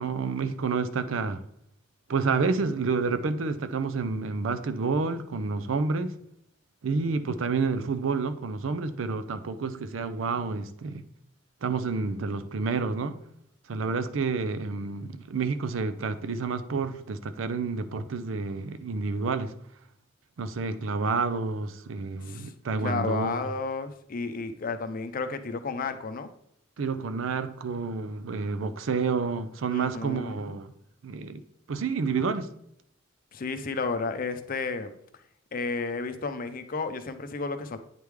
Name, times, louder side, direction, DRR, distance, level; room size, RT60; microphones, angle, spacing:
voice 1, 0.0-1.4 2.1-6.2 6.8-11.0 11.6-13.2 13.7-19.5 20.4-23.4 26.8-30.7 31.0-31.4 31.7-32.5, right 4 dB, 85° right, 0.5 m, -29 dB
voice 2, 22.8-26.3 29.7-30.6 33.3-34.9 35.5-37.8, left 4 dB, 45° left, 0.5 m, -32 dB
9.0 x 3.4 x 3.2 m
head